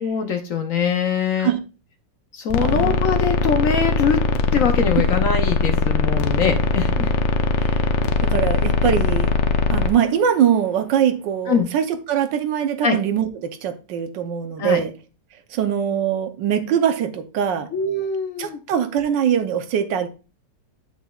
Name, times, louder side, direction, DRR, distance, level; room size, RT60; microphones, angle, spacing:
voice 1, 0.0-1.5 2.3-4.2 4.5-7.1 11.5-11.7 12.8-13.0 14.6-14.8 17.7-18.6, left 6 dB, 60° left, 1.0 m, -22 dB
sound 1, 2.5-9.9, left 3 dB, 80° left, 1.4 m, -20 dB
voice 2, 2.6-2.9 7.6-7.8 8.2-9.3 9.7-14.9 15.5-17.7 18.4-20.1, right 9 dB, 80° right, 1.5 m, -22 dB
7.9 x 6.9 x 2.3 m
omnidirectional pair, 1.9 m